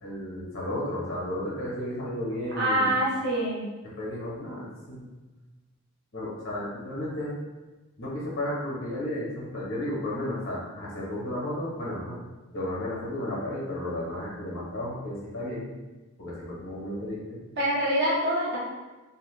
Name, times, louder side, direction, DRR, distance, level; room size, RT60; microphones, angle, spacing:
voice 1, 0.0-2.9 3.8-5.1 6.1-7.3 8.0-12.2 12.5-15.7 16.2-17.4, left 1 dB, 60° left, -5 dB, 1.1 m, -33 dB
voice 2, 2.6-3.6 17.6-18.6, right 1 dB, 50° right, -6 dB, 0.9 m, -25 dB
2.8 x 2.3 x 3.1 m, 1.2 s
head